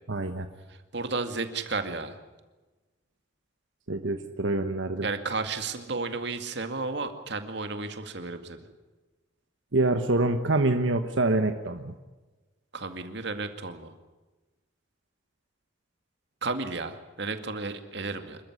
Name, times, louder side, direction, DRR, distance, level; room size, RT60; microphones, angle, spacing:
voice 1, 0.1-0.5 3.9-5.1 9.7-11.9, right 2 dB, 85° right, 7 dB, 1.2 m, -26 dB
voice 2, 0.9-2.2 5.0-8.6 12.7-13.9 16.4-18.4, right 3 dB, 65° right, 7 dB, 2.2 m, -33 dB
26.5 x 14.0 x 9.8 m, 1.2 s
head